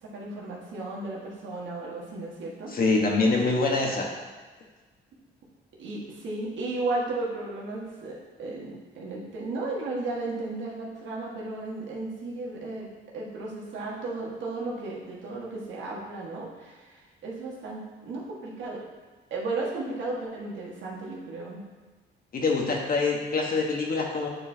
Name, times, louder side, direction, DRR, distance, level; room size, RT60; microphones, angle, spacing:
voice 1, 0.0-2.7 5.8-18.8 19.3-21.7, right 2 dB, 70° right, -4 dB, 1.7 m, -34 dB
voice 2, 2.7-4.1 22.3-24.3, left 3 dB, 45° left, 0 dB, 1.3 m, -25 dB
8.9 x 4.5 x 2.8 m, 1.3 s
cardioid pair, 90°, 20 cm